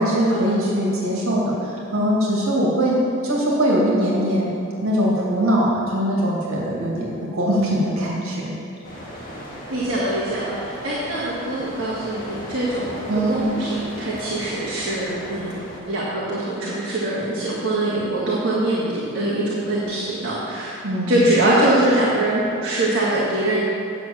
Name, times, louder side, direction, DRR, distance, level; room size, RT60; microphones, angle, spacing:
voice 1, 0.0-3.0 3.2-4.5 4.8-8.5 13.1-13.4 20.8-21.4, equal, 80° right, -4 dB, 2.3 m, -21 dB
sound 1, 8.8-15.8, equal, 35° left, 2.2 m, -36 dB
voice 2, 9.7-12.9 13.3-20.8 21.1-23.6, right 1 dB, 60° right, -8 dB, 1.9 m, -23 dB
9.4 x 6.4 x 7.3 m, 2.5 s
head